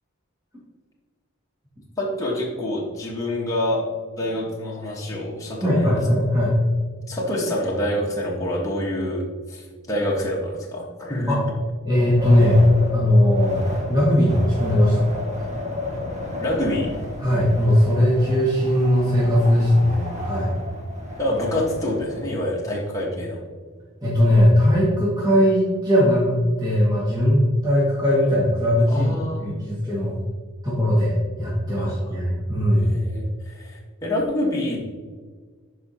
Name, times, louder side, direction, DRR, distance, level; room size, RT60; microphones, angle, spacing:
voice 1, 2.0-3.9 4.2-6.0 7.1-11.4 16.4-16.9 21.2-23.4 28.9-29.5 31.7-32.2 32.7-34.8, left 1 dB, 15° left, -4 dB, 1.4 m, -27 dB
voice 2, 5.6-6.5 11.3-11.4 11.8-12.6 12.9-15.1 17.2-20.6 24.0-29.2 29.4-30.2 30.6-33.0, equal, 20° right, -8 dB, 2.0 m, -19 dB
Wind, 11.9-22.2, left 1 dB, 35° right, 1.3 m, -33 dB
11.5 x 4.9 x 2.9 m, 1.5 s
head